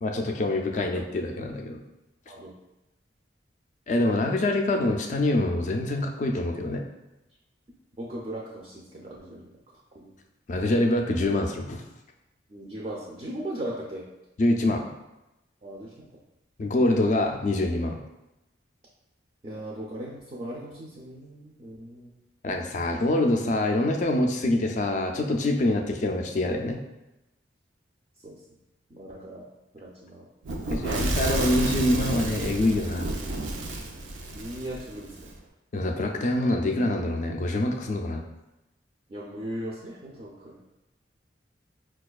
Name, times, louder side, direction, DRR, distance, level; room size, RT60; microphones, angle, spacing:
voice 1, 0.0-1.8 3.9-6.8 10.5-11.8 14.4-14.9 16.6-18.0 22.4-26.8 30.7-33.1 35.7-38.2, left 1 dB, 40° left, 3 dB, 0.3 m, -25 dB
voice 2, 8.0-9.5 9.9-10.2 12.5-14.1 15.6-16.2 19.4-22.1 28.2-28.4 28.9-29.5 29.7-30.3 30.6-31.1 34.3-35.3 39.1-40.6, right 1 dB, 35° right, -3 dB, 0.4 m, -38 dB
Fire / Explosion, 30.4-35.3, right 2 dB, 90° right, 0.5 m, -30 dB
4.9 x 2.3 x 2.3 m, 0.95 s
head